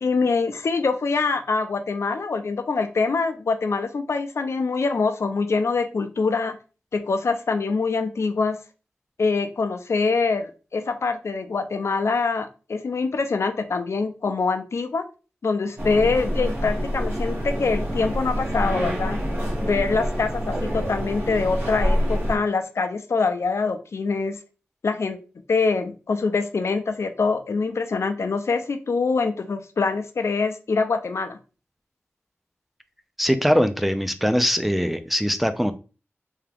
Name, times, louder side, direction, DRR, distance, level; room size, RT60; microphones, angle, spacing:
voice 1, 0.0-6.6 6.9-8.6 9.2-15.1 15.4-19.2 19.6-24.4 24.8-25.2 25.5-31.4, left 4 dB, 75° left, 8 dB, 0.5 m, -24 dB
sound 1, 15.8-22.4, equal, 60° right, 1.6 m, -26 dB
voice 2, 33.2-35.7, equal, ahead, 10 dB, 0.4 m, -21 dB
3.5 x 2.8 x 3.5 m, 0.34 s
wide cardioid pair, 100°, 5 cm